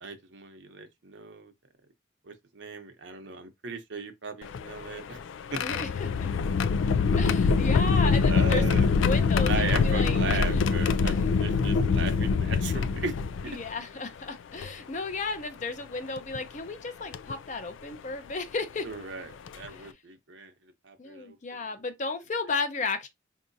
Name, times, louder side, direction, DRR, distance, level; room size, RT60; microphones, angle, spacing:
voice 1, 0.0-1.5 2.2-5.2 5.5-5.6 8.3-8.9 9.5-13.2 18.8-20.5 20.8-21.7, right 4 dB, 75° right, 0.8 m, -37 dB
sound 1, 4.4-13.7 14.6-14.7 16.2-16.4 17.1-17.3 18.9-19.0 19.5-19.7, left 5 dB, 85° left, 0.3 m, -24 dB
voice 2, 5.6-6.3 7.2-8.6 8.9-10.6 11.1-11.2 13.5-18.8 19.7-19.9 21.0-23.1, left 3 dB, 40° left, 0.6 m, -34 dB
4.7 x 2.8 x 2.6 m
head